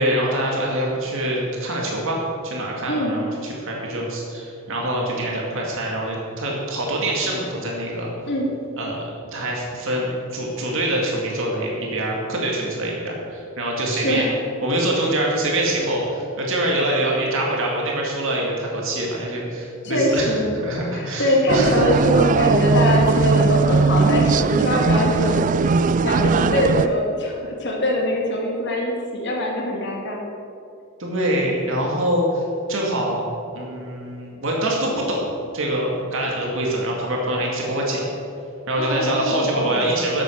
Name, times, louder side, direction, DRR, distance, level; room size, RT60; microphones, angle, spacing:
voice 1, 0.0-8.1 8.8-9.0 9.3-14.3 14.6-21.8 31.0-32.4 32.7-33.3 33.5-38.0 38.7-40.2, right 1 dB, 60° right, -2 dB, 2.3 m, -24 dB
voice 2, 8.3-8.6 13.9-14.3 19.8-20.5 20.9-25.5 26.0-30.2 38.8-39.8, left 1 dB, 55° left, -1 dB, 2.3 m, -22 dB
sound 1, 21.5-26.9, right 4 dB, 35° right, 0.3 m, -19 dB
12.5 x 8.1 x 6.4 m, 2.6 s
head